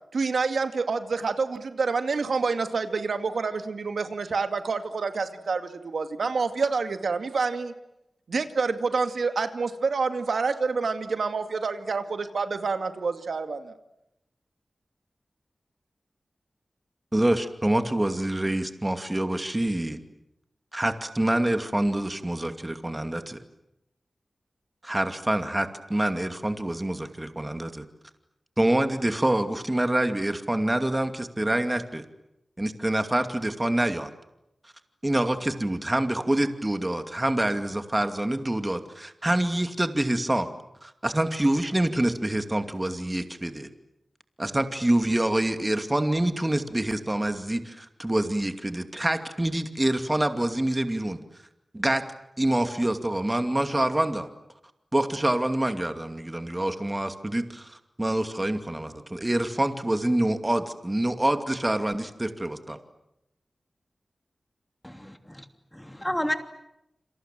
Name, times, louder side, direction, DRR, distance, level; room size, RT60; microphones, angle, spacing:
voice 1, 0.1-7.7 8.3-13.7, right 4 dB, 85° right, 8 dB, 2.2 m, -27 dB
voice 2, 17.1-20.0 20.7-23.4 24.8-27.8 28.6-32.0 32.6-34.1 35.0-40.5 40.8-43.7 44.4-51.2 51.7-52.0 52.4-54.3 54.9-62.8, right 1 dB, 20° right, 8 dB, 2.5 m, -26 dB
voice 3, 64.8-65.5 65.7-66.3, equal, 10° left, 7 dB, 3.0 m, -31 dB
28.5 x 27.0 x 7.6 m, 0.85 s
wide cardioid pair, 75°, 0 cm